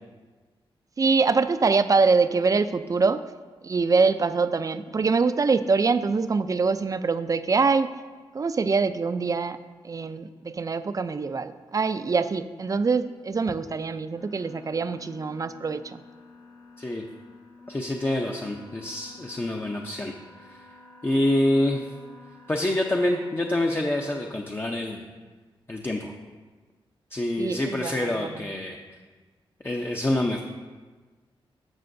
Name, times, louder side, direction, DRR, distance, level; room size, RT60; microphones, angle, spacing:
voice 1, 1.0-3.2 3.6-7.9 8.3-9.6 9.8-16.0 27.4-28.4, right 4 dB, 35° right, 12 dB, 0.4 m, -24 dB
sound 1, 14.1-24.3, left 2 dB, 75° left, 1.4 m, -50 dB
voice 2, 17.7-20.1 20.4-20.6 21.0-21.8 22.5-25.0 25.7-26.1 27.1-28.8 29.6-30.4, left 1 dB, 25° left, 1 dB, 0.6 m, -26 dB
12.5 x 6.7 x 2.6 m, 1.4 s
cardioid pair, 80°, 10 cm